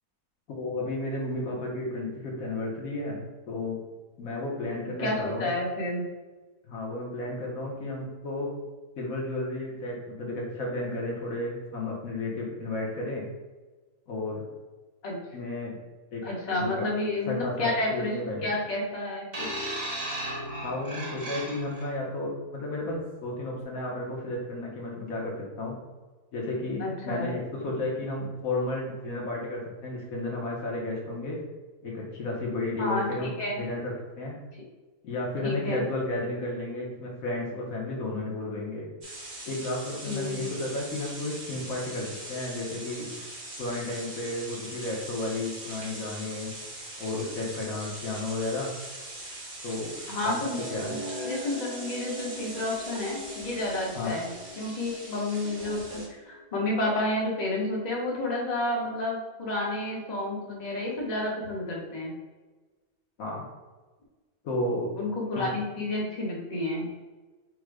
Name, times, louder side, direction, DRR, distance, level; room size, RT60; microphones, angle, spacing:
voice 1, 0.5-3.8 4.2-5.5 6.7-8.5 9.0-13.2 14.1-14.4 15.3-15.8 16.1-16.2 16.6-16.8 17.3-18.5 20.6-25.7 26.3-31.4 31.8-34.4 35.0-38.9 39.5-43.1 43.6-46.5 47.0-48.7 49.6-49.9 50.2-50.4 50.7-50.9 54.0-54.1 63.2-63.4 64.4-64.9 65.3-65.5, left 2 dB, 75° left, -2 dB, 1.5 m, -33 dB
voice 2, 5.0-6.1 15.0-15.2 16.2-19.6 26.8-27.3 32.8-33.6 35.4-35.8 40.1-40.4 50.1-62.1 64.9-66.9, left 2 dB, 30° left, -3 dB, 1.1 m, -30 dB
sound 1, 19.3-21.9 22.8-23.0, right 1 dB, 45° right, 1.5 m, -35 dB
sound 2, 39.0-56.1, right 1 dB, 60° right, 1.8 m, -41 dB
sound 3, 50.2-56.4, equal, 50° left, 1.5 m, -42 dB
5.1 x 2.2 x 4.8 m, 1.3 s
omnidirectional pair, 1.5 m